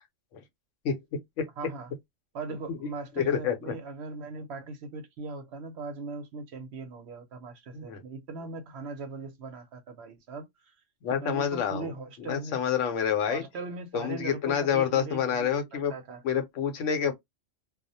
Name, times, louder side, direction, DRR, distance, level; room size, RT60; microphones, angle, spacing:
voice 1, 1.6-1.9 2.3-10.7 11.1-12.6 13.3-16.2, right 3 dB, 65° right, 0.8 m, -40 dB
voice 2, 3.2-3.7 7.7-8.0 11.0-11.9 12.2-13.4 13.9-15.9 16.2-17.1, left 8 dB, 80° left, 1.0 m, -28 dB
2.3 x 2.0 x 2.6 m
omnidirectional pair, 1.3 m